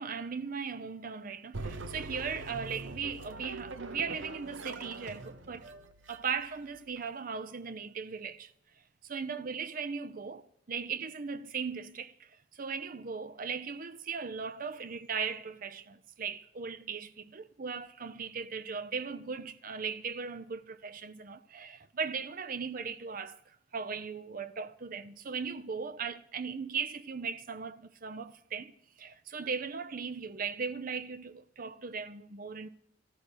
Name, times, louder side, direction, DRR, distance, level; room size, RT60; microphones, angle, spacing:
voice 1, 0.0-5.7 6.1-8.5 9.0-28.7 29.0-32.7, right 5 dB, 45° right, 0.6 m, -38 dB
sound 1, 1.5-7.0, right 2 dB, 75° right, 0.8 m, -43 dB
14.5 x 5.8 x 9.8 m
head